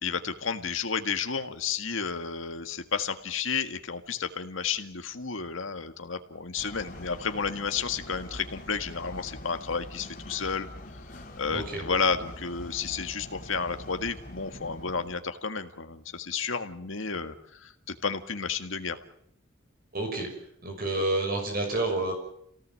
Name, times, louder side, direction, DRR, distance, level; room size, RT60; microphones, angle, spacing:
voice 1, 0.0-10.7 11.1-19.0, left 5 dB, 70° left, 7 dB, 1.8 m, -32 dB
sound 1, 6.6-15.2, left 1 dB, 40° left, 4.1 m, -44 dB
voice 2, 11.5-11.8 19.9-20.3 20.6-22.1, right 2 dB, 45° right, 3 dB, 6.3 m, -29 dB
28.0 x 18.0 x 7.7 m, 0.72 s
head